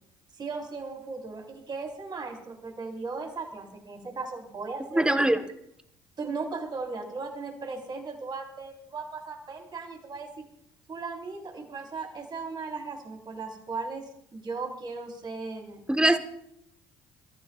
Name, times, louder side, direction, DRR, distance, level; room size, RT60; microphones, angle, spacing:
voice 1, 0.3-5.3 6.2-10.3 10.9-15.8, right 4 dB, 40° right, 1 dB, 4.3 m, -37 dB
voice 2, 4.9-5.4 15.9-16.2, right 1 dB, 5° right, 8 dB, 1.4 m, -21 dB
27.5 x 14.0 x 2.5 m, 0.74 s
hypercardioid pair, 60°, 12 cm